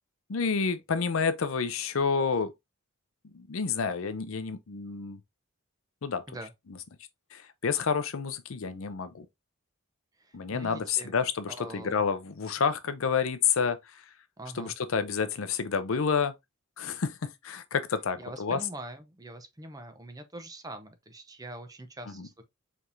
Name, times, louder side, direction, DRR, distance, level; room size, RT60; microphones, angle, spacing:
voice 1, 0.3-2.5 3.3-5.2 6.0-6.2 7.3-9.2 10.3-13.8 14.6-16.3 16.8-18.6 22.2-22.3, left 5 dB, 65° left, 0.6 m, -29 dB
voice 2, 10.2-11.2 11.5-12.0 14.4-14.7 18.2-22.4, right 1 dB, 15° right, 0.6 m, -44 dB
4.8 x 3.5 x 2.6 m
head